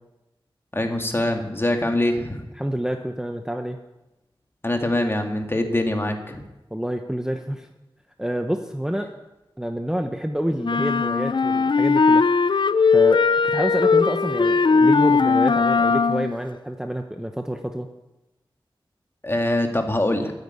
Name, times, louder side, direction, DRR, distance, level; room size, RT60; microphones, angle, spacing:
voice 1, 0.7-2.4 4.6-6.4 19.2-20.3, left 1 dB, 25° left, 4 dB, 2.2 m, -23 dB
voice 2, 2.6-3.8 6.7-7.7 8.2-9.1 9.6-12.2 12.9-17.9, equal, 5° right, 5 dB, 1.0 m, -28 dB
sound 1, 10.6-16.4, left 5 dB, 60° left, 0.5 m, -19 dB
13.5 x 9.5 x 8.6 m, 0.97 s
wide cardioid pair, 65°, 9 cm